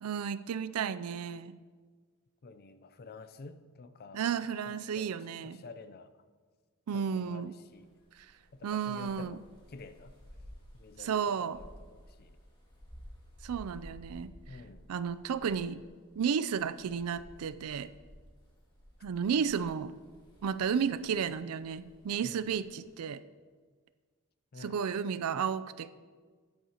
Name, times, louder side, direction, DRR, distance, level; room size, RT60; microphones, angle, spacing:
voice 1, 0.0-1.6 4.1-5.6 6.9-7.5 8.6-9.4 11.0-11.6 13.4-14.3 14.9-15.8 16.2-17.9 19.0-19.9 20.4-23.2 24.6-25.9, right 7 dB, 85° right, 15 dB, 0.4 m, -33 dB
voice 2, 2.4-4.2 4.7-6.1 6.9-7.9 8.5-10.2 10.7-12.4 14.5-14.9 22.2-22.6 24.5-24.8, left 3 dB, 45° left, 11 dB, 0.5 m, -50 dB
sound 1, 7.7-23.1, equal, 20° left, 2.0 m, -55 dB
14.0 x 9.6 x 2.9 m, 1.5 s
head